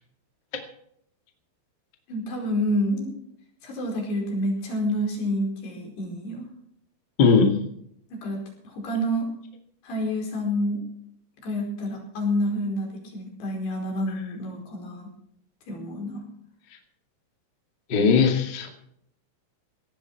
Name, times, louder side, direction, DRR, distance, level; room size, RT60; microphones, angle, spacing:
voice 1, 2.1-3.1 3.6-6.5 8.1-8.4 8.6-9.3 9.8-10.8 11.4-15.1 15.7-16.2, equal, 55° left, 0 dB, 6.6 m, -28 dB
voice 2, 7.2-7.5 17.9-18.7, left 5 dB, 40° left, 4 dB, 1.5 m, -18 dB
18.0 x 13.5 x 4.6 m, 0.70 s
omnidirectional pair, 5.6 m